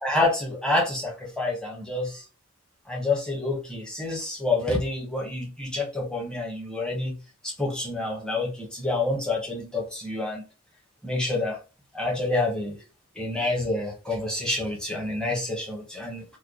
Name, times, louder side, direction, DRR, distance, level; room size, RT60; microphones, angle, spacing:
voice 1, 0.0-2.2 2.9-7.2 7.4-10.4 11.0-11.6 11.9-12.8 13.2-16.2, left 2 dB, 5° left, -2 dB, 0.9 m, -28 dB
3.3 x 2.1 x 3.7 m, 0.33 s
head